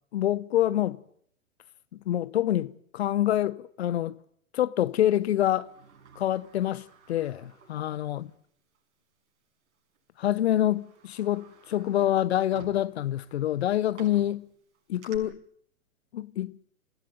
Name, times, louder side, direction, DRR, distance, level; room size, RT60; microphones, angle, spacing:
voice 1, 0.1-1.0 2.1-4.2 4.5-5.7 6.2-8.2 10.2-14.5 14.9-15.4 16.1-16.6, left 12 dB, 50° left, 0.9 m, -26 dB
Sliding door, 5.2-8.4 8.7-8.8 9.8-10.0 10.4-15.2, right 5 dB, 55° right, 6.2 m, -53 dB
28.0 x 16.0 x 9.1 m
figure-of-eight pair, 120°, 41 cm